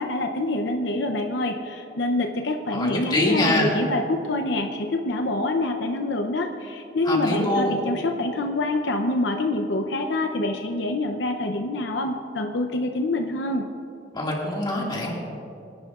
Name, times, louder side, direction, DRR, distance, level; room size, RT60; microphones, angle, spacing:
voice 1, 0.0-13.7, left 2 dB, 75° left, 4 dB, 0.7 m, -26 dB
voice 2, 2.7-3.7 7.0-7.7 14.1-15.1, left 1 dB, 25° left, -2 dB, 2.1 m, -24 dB
22.0 x 10.5 x 2.5 m, 2.6 s
head